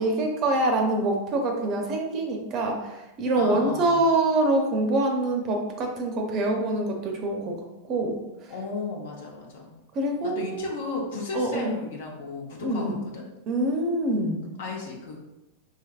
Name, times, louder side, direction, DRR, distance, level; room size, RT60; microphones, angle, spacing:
voice 1, 0.0-7.6 7.8-8.2 9.9-10.6 11.3-11.7 12.6-13.1 13.5-14.5, right 2 dB, 40° right, 2 dB, 0.5 m, -25 dB
voice 2, 3.3-4.1 8.5-9.7 10.2-13.2 14.6-15.2, left 3 dB, 75° left, -1 dB, 0.8 m, -34 dB
3.2 x 2.8 x 2.4 m, 0.99 s
supercardioid pair, 140°, 0 cm